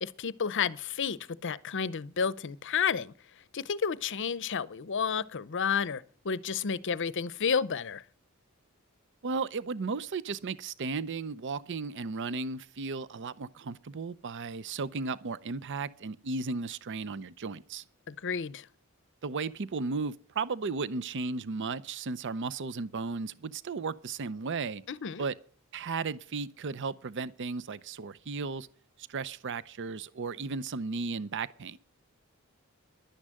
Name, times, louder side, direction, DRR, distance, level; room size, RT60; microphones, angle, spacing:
voice 1, 0.0-3.1 3.5-8.0 18.1-18.7 24.9-25.3, left 6 dB, 55° left, 0.7 m, -31 dB
voice 2, 9.2-17.8 19.2-24.8 25.2-25.3 25.7-28.7 29.1-31.8, right 4 dB, 55° right, 0.6 m, -35 dB
11.5 x 9.9 x 7.5 m
head